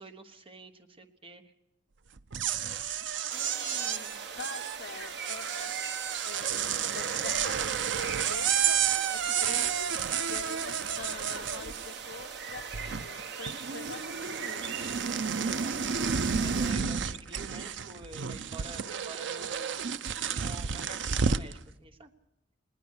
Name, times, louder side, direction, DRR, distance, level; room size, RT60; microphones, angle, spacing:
voice 1, 0.0-1.5 15.1-15.9 16.1-22.1, right 2 dB, 30° right, 6 dB, 1.1 m, -48 dB
sound 1, 2.2-12.2 12.5-13.2 13.5-21.5, right 7 dB, 80° right, 0.6 m, -31 dB
voice 2, 3.3-5.7 6.2-14.8, left 4 dB, 70° left, 8 dB, 0.8 m, -45 dB
sound 2, 3.3-16.7, right 6 dB, 65° right, 1.2 m, -41 dB
20.0 x 19.5 x 6.6 m, 0.91 s
head